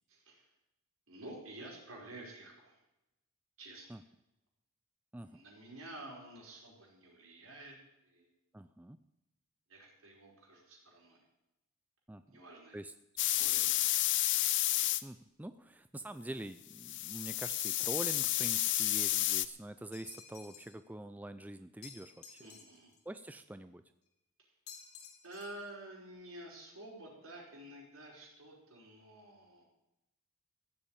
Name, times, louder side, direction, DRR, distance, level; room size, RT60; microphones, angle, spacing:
voice 1, 0.1-0.5 1.1-2.8 3.6-4.0 5.2-7.8 8.0-8.3 9.7-11.3 12.3-12.8 13.3-14.0 22.4-22.9 24.4-24.5 25.2-29.6, right 1 dB, 70° right, -2 dB, 4.8 m, -50 dB
voice 2, 8.5-9.0 12.1-12.2 12.7-12.9 15.0-22.4 23.1-23.8, right 1 dB, 10° right, 11 dB, 0.4 m, -45 dB
sound 1, 13.2-15.0 16.8-19.5, left 15 dB, 55° left, 0.6 m, -31 dB
sound 2, 19.9-20.8 21.8-23.0 24.7-25.7, left 6 dB, 85° left, 2.1 m, -53 dB
15.5 x 7.1 x 8.9 m, 0.94 s
head